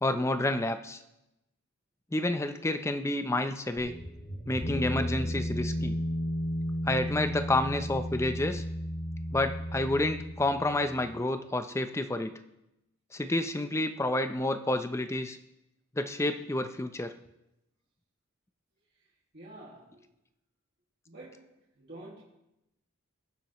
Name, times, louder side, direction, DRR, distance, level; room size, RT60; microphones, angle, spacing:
voice 1, 0.0-1.0 2.1-3.9 4.5-6.0 6.9-8.6 9.3-12.3 13.1-15.4 16.0-17.1, left 2 dB, 10° left, 9 dB, 0.5 m, -29 dB
sound 1, 3.8-11.2, equal, 45° left, 1.6 m, -34 dB
voice 2, 19.3-20.0 21.1-21.5 21.8-22.2, right 2 dB, 50° right, -6 dB, 1.9 m, -48 dB
20.5 x 7.3 x 3.0 m, 0.89 s
head